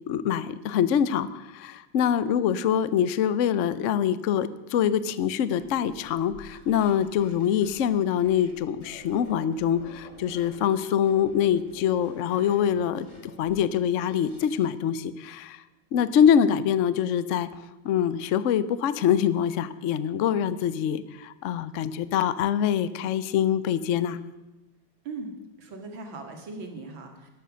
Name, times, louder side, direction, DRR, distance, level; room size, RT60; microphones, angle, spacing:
voice 1, 0.1-13.1 13.4-15.6 15.9-17.5 17.8-24.2, left 9 dB, 70° left, 15 dB, 0.7 m, -24 dB
sound 1, 5.6-8.5 8.8-10.6 11.0-14.7, left 1 dB, 45° left, 4.8 m, -48 dB
voice 2, 25.0-27.3, right 3 dB, 75° right, 4 dB, 2.8 m, -39 dB
12.5 x 12.5 x 6.3 m, 1.0 s
omnidirectional pair, 2.1 m